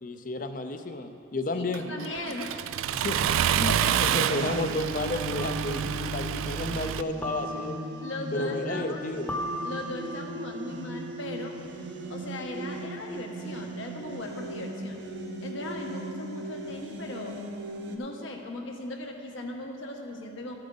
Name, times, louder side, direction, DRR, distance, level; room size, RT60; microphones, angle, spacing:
voice 1, 0.0-1.9 2.9-3.3 3.6-7.8 8.3-9.4, left 2 dB, 40° left, 8 dB, 0.5 m, -32 dB
voice 2, 1.5-2.8 3.6-4.4 8.0-9.0 9.6-11.6 12.1-15.0 15.4-17.4 17.9-20.5, left 2 dB, 75° left, 1 dB, 1.2 m, -38 dB
Accelerating revving vroom, 1.7-7.0, right 10 dB, 90° right, 0.3 m, -28 dB
sound 1, 2.2-2.3 3.8-4.1 5.4-6.0 7.2-8.0 9.3-10.2, equal, 10° left, 0.8 m, -37 dB
sound 2, 4.1-18.0, right 1 dB, 60° right, 0.8 m, -38 dB
13.5 x 8.6 x 3.9 m, 2.7 s
head